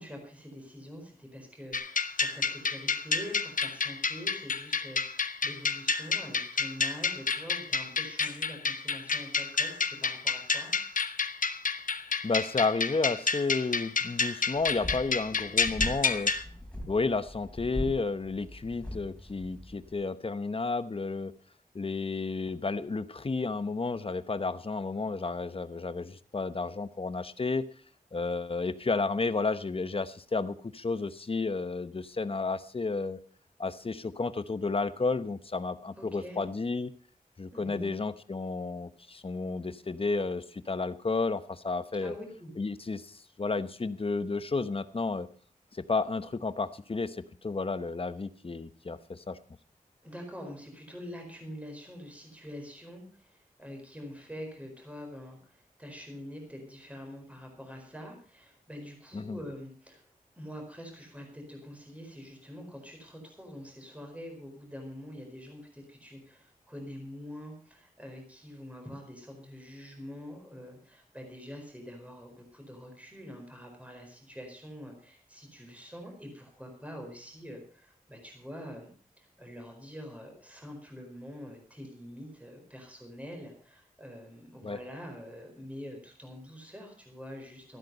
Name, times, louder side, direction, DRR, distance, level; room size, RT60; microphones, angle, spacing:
voice 1, 0.0-10.7 36.0-36.4 37.5-37.9 42.0-42.5 50.0-60.0 60.4-78.9 79.2-87.8, equal, 10° right, 2 dB, 4.6 m, -45 dB
sound 1, 1.7-16.4, left 5 dB, 70° left, 0.9 m, -30 dB
voice 2, 12.2-16.3 16.9-21.3 21.7-27.7 28.1-33.2 33.6-36.9 37.4-42.1 42.6-45.3 45.7-49.4 59.1-59.4 84.6-84.8, left 3 dB, 40° left, 13 dB, 0.9 m, -32 dB
sound 2, 14.6-19.9, left 1 dB, 5° left, 4.4 m, -39 dB
14.0 x 12.0 x 5.4 m, 0.42 s
wide cardioid pair, 105°, 15 cm